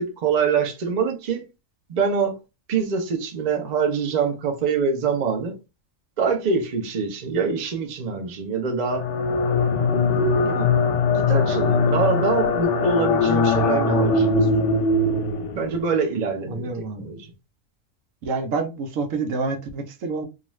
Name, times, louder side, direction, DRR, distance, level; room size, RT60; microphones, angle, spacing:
voice 1, 0.0-1.5 1.9-2.4 2.7-5.6 6.2-9.1 10.2-10.7 11.1-14.8 15.5-17.3, right 5 dB, 50° right, 0.5 m, -25 dB
sound 1, 8.8-15.8, left 3 dB, 70° left, 0.8 m, -21 dB
voice 2, 16.5-17.1 18.2-20.3, right 4 dB, 75° right, 1.0 m, -28 dB
2.4 x 2.4 x 3.0 m
omnidirectional pair, 1.4 m